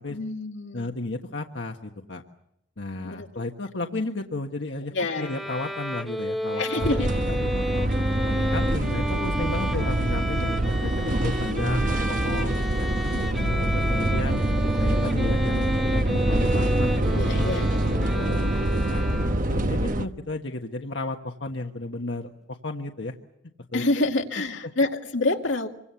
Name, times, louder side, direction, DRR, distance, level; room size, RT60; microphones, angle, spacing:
voice 1, 0.1-0.9 3.0-3.3 4.9-5.3 6.5-7.1 13.1-13.8 17.2-17.7 23.7-25.7, left 2 dB, 90° left, 3 dB, 2.1 m, -27 dB
voice 2, 0.7-2.2 2.8-6.9 7.3-7.9 8.3-12.9 13.4-14.4 14.8-17.6 17.8-19.0 19.5-23.2 23.7-23.8, left 2 dB, 70° left, 3 dB, 1.4 m, -33 dB
Bowed string instrument, 5.1-19.6, equal, ahead, 1.0 m, -32 dB
sound 1, 6.8-20.1, right 1 dB, 45° right, 1.1 m, -25 dB
26.5 x 24.5 x 7.1 m, 0.78 s
head